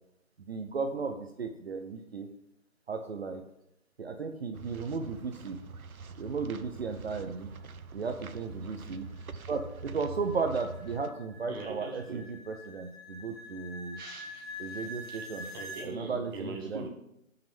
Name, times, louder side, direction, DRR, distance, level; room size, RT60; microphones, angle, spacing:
voice 1, 0.4-2.3 2.9-3.4 4.0-5.6 6.2-7.5 7.9-9.1 9.5-14.0 14.6-15.5 15.8-16.9, right 4 dB, 50° right, 0.8 m, -35 dB
sound 1, 4.5-11.1, right 4 dB, 90° right, 0.8 m, -45 dB
voice 2, 8.6-9.0 9.3-9.4 11.5-12.2 14.0-16.9, right 3 dB, 15° right, 1.2 m, -43 dB
sound 2, 8.7-15.9, left 1 dB, 45° left, 2.4 m, -46 dB
17.0 x 5.9 x 3.5 m
figure-of-eight pair, 160°, 41 cm